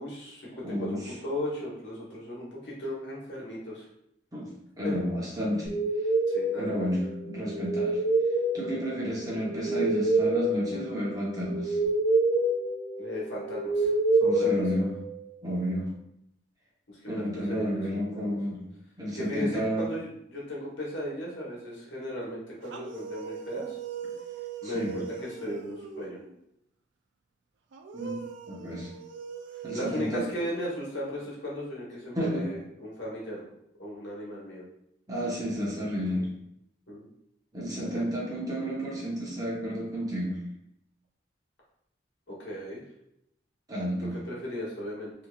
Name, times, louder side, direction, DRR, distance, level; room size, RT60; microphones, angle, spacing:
voice 1, 0.0-3.9 4.8-4.9 6.3-6.7 13.0-13.9 14.2-14.9 16.9-18.2 19.1-23.8 24.6-26.2 29.7-33.5 33.8-34.6 36.1-36.3 36.9-37.1 37.8-38.1 42.3-42.8 44.3-45.1, left 1 dB, 75° left, -5 dB, 1.2 m, -36 dB
voice 2, 0.6-1.0 4.3-4.5 4.8-5.8 6.6-8.0 8.5-11.8 14.2-14.9 15.4-15.9 17.1-18.6 19.0-19.9 24.6-25.0 27.9-28.9 29.6-30.2 32.2-32.5 35.1-36.3 37.5-40.4 43.7-44.2, equal, 20° right, -6 dB, 0.9 m, -31 dB
sound 1, 5.7-15.3, right 2 dB, 45° right, 1.3 m, -27 dB
sound 2, 22.6-26.4 27.7-31.3, right 7 dB, 75° right, 0.4 m, -41 dB
3.4 x 2.8 x 2.3 m, 0.77 s
head